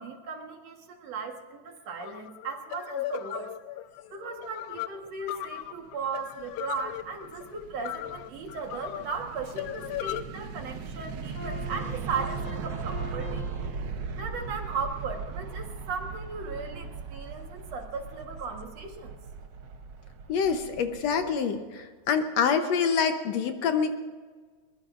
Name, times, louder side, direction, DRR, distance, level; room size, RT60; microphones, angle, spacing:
voice 1, 0.0-3.5 4.1-13.5 14.2-19.2, right 5 dB, 65° right, 4 dB, 2.5 m, -37 dB
sound 1, 2.0-10.2, left 14 dB, 90° left, 2.1 m, -37 dB
sound 2, 5.8-21.3, right 5 dB, 90° right, 0.9 m, -39 dB
sound 3, 11.2-15.4, left 3 dB, 50° left, 6.6 m, -45 dB
voice 2, 20.3-23.9, left 6 dB, 70° left, 7 dB, 2.0 m, -26 dB
22.5 x 21.5 x 2.5 m, 1.5 s
omnidirectional pair, 3.3 m